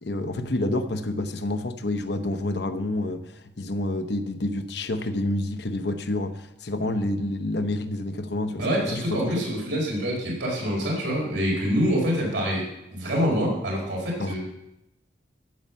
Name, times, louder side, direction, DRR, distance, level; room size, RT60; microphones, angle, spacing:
voice 1, 0.0-9.3 14.2-14.4, left 1 dB, 65° left, 9 dB, 0.9 m, -28 dB
voice 2, 8.6-14.4, equal, 85° right, -3 dB, 4.7 m, -26 dB
14.5 x 5.6 x 7.4 m, 0.88 s
head